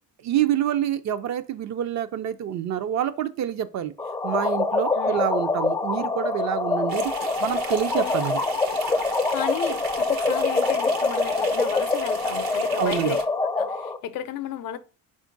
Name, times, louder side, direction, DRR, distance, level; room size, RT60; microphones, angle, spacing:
voice 1, 0.2-3.9 4.2-7.1 7.4-8.4 12.8-13.2, right 10 dB, 50° right, 0.5 m, -27 dB
sound 1, 4.0-14.0, left 3 dB, 10° left, 0.4 m, -25 dB
sound 2, 6.9-13.2, right 6 dB, 75° right, 0.9 m, -37 dB
voice 2, 9.3-13.2 13.6-14.8, left 10 dB, 70° left, 0.6 m, -33 dB
4.4 x 2.5 x 3.8 m
cardioid pair, 95°, 35 cm